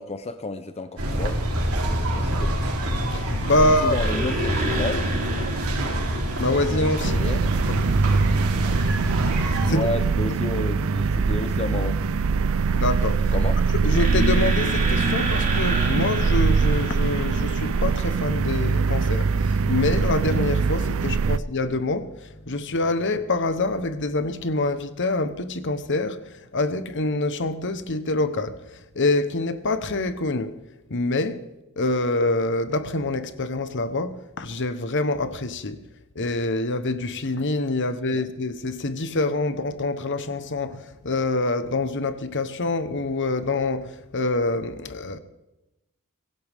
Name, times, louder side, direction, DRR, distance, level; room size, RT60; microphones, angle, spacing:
voice 1, 0.0-1.4 2.2-2.5 3.6-5.1 5.5-5.6 7.0-7.4 9.7-12.2 13.3-13.6 38.1-38.2, left 2 dB, 30° left, 0.8 m, -31 dB
sound 1, 1.0-9.7, equal, 90° right, 3.7 m, -26 dB
voice 2, 3.1-3.9 6.4-7.2 7.7-7.8 9.6-9.8 12.7-13.3 13.8-30.6 30.9-31.4 31.8-35.8 36.1-45.2, left 2 dB, 55° left, 1.2 m, -26 dB
sound 2, 3.9-7.6 13.9-18.1, right 1 dB, 35° right, 3.7 m, -30 dB
sound 3, 7.0-21.4, right 5 dB, 65° right, 0.5 m, -23 dB
23.5 x 16.5 x 3.7 m
head